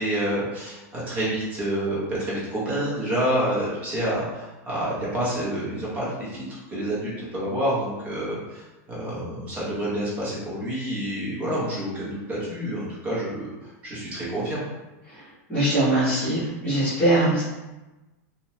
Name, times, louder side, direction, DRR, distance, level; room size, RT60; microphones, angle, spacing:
voice 1, 0.0-14.6, right 1 dB, 15° right, -7 dB, 0.7 m, -28 dB
voice 2, 15.5-17.4, right 1 dB, 15° left, -12 dB, 1.2 m, -22 dB
2.8 x 2.1 x 2.7 m, 1.1 s
supercardioid pair, 175°, 8 cm